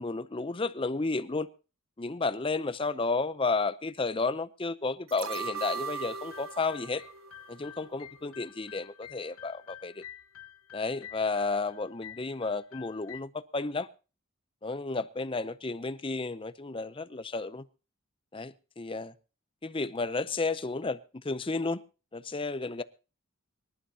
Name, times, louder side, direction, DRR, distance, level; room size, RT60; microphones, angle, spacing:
voice 1, 0.0-1.5 2.0-7.0 7.5-10.0 10.7-13.9 14.6-17.6 18.3-19.1 19.6-21.8 22.1-22.8, left 3 dB, 25° left, 0.6 m, -32 dB
sound 1, 5.1-8.2 8.6-8.7, right 5 dB, 70° right, 0.9 m, -39 dB
sound 2, 6.0-13.2, left 12 dB, 85° left, 0.8 m, -50 dB
24.5 x 11.5 x 2.8 m
head